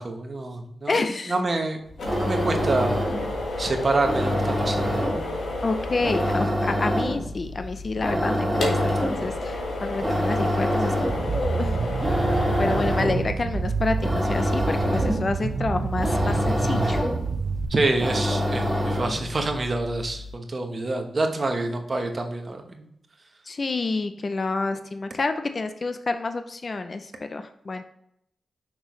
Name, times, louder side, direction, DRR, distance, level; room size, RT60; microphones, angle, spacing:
voice 1, 0.0-1.8 2.2-3.0 3.6-5.0 17.7-22.9, right 2 dB, 35° right, 4 dB, 1.1 m, -27 dB
voice 2, 0.9-1.3 5.6-11.8 12.6-17.0 23.5-27.8, left 3 dB, 40° left, 8 dB, 0.5 m, -28 dB
sound 1, 1.9-19.4, equal, 5° right, 2.2 m, -27 dB
sound 2, 2.0-20.3, left 2 dB, 90° left, 1.6 m, -33 dB
sound 3, 11.1-17.6, right 5 dB, 55° right, 0.5 m, -28 dB
6.3 x 6.1 x 3.1 m, 0.72 s
wide cardioid pair, 105°, 0 cm